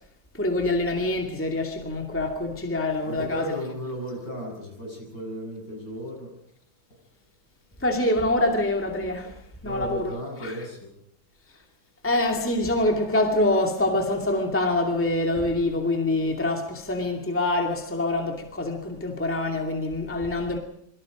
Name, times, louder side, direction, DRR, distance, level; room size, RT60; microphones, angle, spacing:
voice 1, 0.3-3.6 7.8-10.6 12.0-20.6, left 2 dB, 5° left, 2.4 m, -25 dB
voice 2, 3.0-6.3 9.6-10.9, equal, 60° left, 8.7 m, -34 dB
27.0 x 23.0 x 5.1 m
omnidirectional pair, 2.1 m